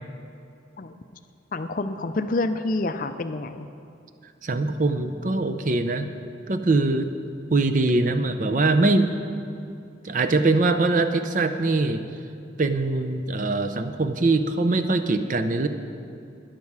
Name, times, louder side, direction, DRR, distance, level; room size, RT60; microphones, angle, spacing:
voice 1, 1.5-3.7, left 2 dB, 45° left, 10 dB, 0.4 m, -28 dB
voice 2, 4.4-6.1 6.5-7.1 7.5-9.2 10.0-12.0 12.6-15.7, right 2 dB, 40° right, 9 dB, 0.5 m, -22 dB
12.5 x 10.5 x 4.8 m, 2.6 s
head